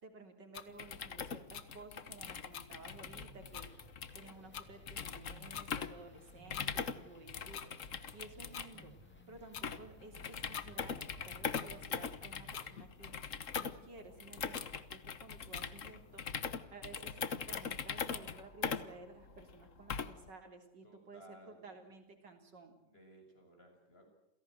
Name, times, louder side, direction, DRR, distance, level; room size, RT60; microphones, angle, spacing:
voice 1, 0.0-3.7 4.1-13.2 13.6-16.2 16.7-17.2 17.5-22.7, right 3 dB, 60° right, 5 dB, 4.1 m, -54 dB
sound 1, 0.5-0.7 1.5-1.7 2.5-2.7 3.2-3.3 3.5-3.7 4.5-4.7 5.5-5.7 6.5-6.7 7.5-7.7 8.5-8.7 9.5-9.7 10.5-10.7 11.5-11.7 12.5-12.7 13.5-13.7 14.5-14.7 15.5-15.7, left 9 dB, 65° left, 1.9 m, -45 dB
sound 2, 0.7-20.3, left 6 dB, 45° left, 1.4 m, -42 dB
sound 3, 2.8-12.8, right 1 dB, 5° left, 2.7 m, -61 dB
voice 2, 20.8-21.7 22.8-24.1, equal, 30° left, 3 dB, 7.6 m, -59 dB
29.0 x 17.5 x 7.9 m, 0.86 s
omnidirectional pair, 2.2 m